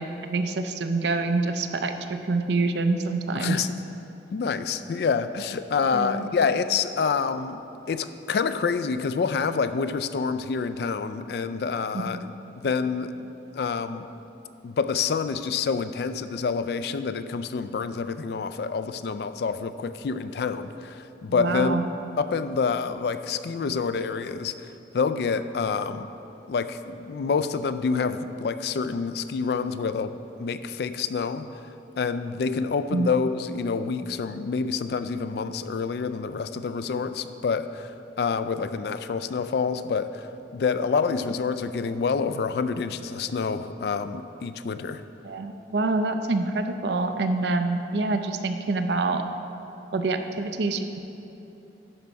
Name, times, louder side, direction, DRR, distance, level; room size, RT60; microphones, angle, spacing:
voice 1, 0.0-3.6 5.9-6.3 11.9-12.3 21.3-21.8 32.9-33.1 45.2-49.2 49.9-51.0, right 3 dB, 65° right, 7 dB, 0.5 m, -26 dB
voice 2, 3.4-3.8 4.3-7.6 7.9-12.3 12.6-13.3 13.5-14.1 14.6-21.8 22.2-26.1 26.5-31.5 32.0-45.0, left 5 dB, 55° left, 12 dB, 0.3 m, -27 dB
11.0 x 4.6 x 5.1 m, 2.9 s
head